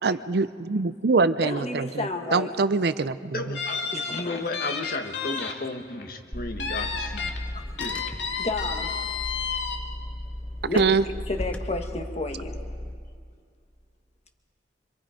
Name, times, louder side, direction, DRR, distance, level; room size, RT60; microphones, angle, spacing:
voice 1, 0.0-2.1 2.3-3.6 10.7-11.0, right 4 dB, 60° right, 14 dB, 0.6 m, -24 dB
voice 2, 1.4-2.5 3.9-4.4 7.5-7.6 8.4-8.9 10.7-12.6, left 2 dB, 35° left, 5 dB, 1.7 m, -32 dB
voice 3, 3.3-7.3 7.8-8.1, left 2 dB, 55° left, 6 dB, 1.5 m, -34 dB
sound 1, 3.5-5.5 5.9-6.0 6.6-7.4 7.8-9.8, left 6 dB, 85° left, 2.1 m, -31 dB
Car / Engine, 6.3-12.9, left 1 dB, 10° left, 0.8 m, -36 dB
26.0 x 25.5 x 5.1 m, 2.1 s
head